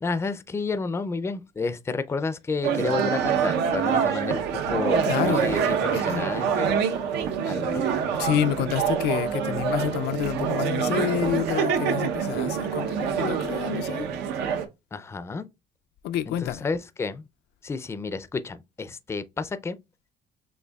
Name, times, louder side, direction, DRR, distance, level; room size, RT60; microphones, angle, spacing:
voice 1, 0.0-6.8 7.4-7.8 14.9-15.4 16.3-17.3 17.6-19.8, left 4 dB, 15° left, 0.4 m, -31 dB
sound 1, 2.6-14.7, right 7 dB, 85° right, 0.8 m, -26 dB
voice 2, 5.0-5.5 5.9-6.3 8.1-14.1 16.0-16.7, left 12 dB, 80° left, 0.4 m, -28 dB
6.4 x 2.7 x 2.3 m
cardioid pair, 110°, 17 cm